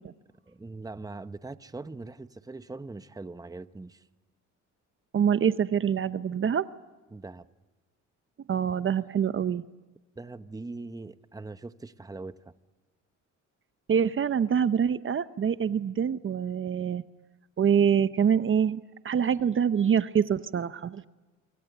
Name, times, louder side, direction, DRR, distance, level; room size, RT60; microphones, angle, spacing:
voice 1, 0.5-4.1 7.1-7.5 10.2-12.3, right 3 dB, 10° right, 0.9 m, -41 dB
voice 2, 5.1-6.7 8.5-9.6 13.9-17.0 17.6-21.1, right 7 dB, 45° right, 0.8 m, -25 dB
26.5 x 24.5 x 8.1 m
cardioid pair, 90°, 30 cm